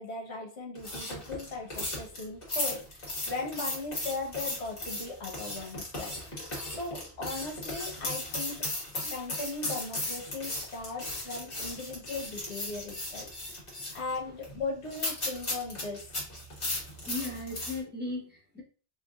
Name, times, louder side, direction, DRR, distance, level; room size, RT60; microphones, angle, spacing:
voice 1, 0.0-6.2 6.8-8.7 8.9-13.3 13.9-16.0, left 3 dB, 75° left, 1 dB, 1.3 m, -38 dB
sound 1, 0.8-17.8, left 1 dB, 55° left, 1.7 m, -36 dB
voice 2, 16.6-18.6, left 2 dB, 10° right, -2 dB, 0.9 m, -38 dB
4.5 x 2.4 x 2.4 m, 0.37 s
omnidirectional pair, 1.1 m